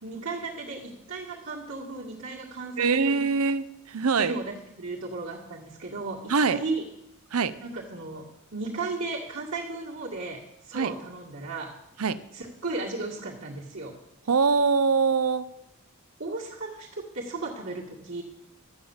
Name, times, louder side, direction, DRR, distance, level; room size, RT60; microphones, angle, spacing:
voice 1, 0.0-3.2 4.2-6.8 7.6-8.2 8.5-10.4 10.6-11.7 12.3-13.9 16.2-18.2, right 3 dB, 60° right, -6 dB, 1.9 m, -35 dB
voice 2, 2.8-4.4 6.3-6.6 7.3-7.5 10.7-11.0 12.0-12.2 14.3-15.5, right 5 dB, 80° right, 14 dB, 0.7 m, -23 dB
12.5 x 8.0 x 7.1 m, 0.86 s
head